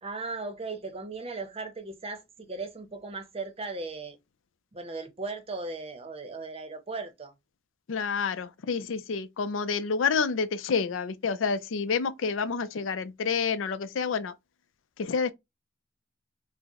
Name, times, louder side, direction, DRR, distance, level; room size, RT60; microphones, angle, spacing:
voice 1, 0.0-4.2 4.7-7.3, right 3 dB, 30° right, 0.7 m, -37 dB
voice 2, 7.9-14.3 15.0-15.3, left 5 dB, 85° left, 0.4 m, -28 dB
4.4 x 2.1 x 2.9 m
head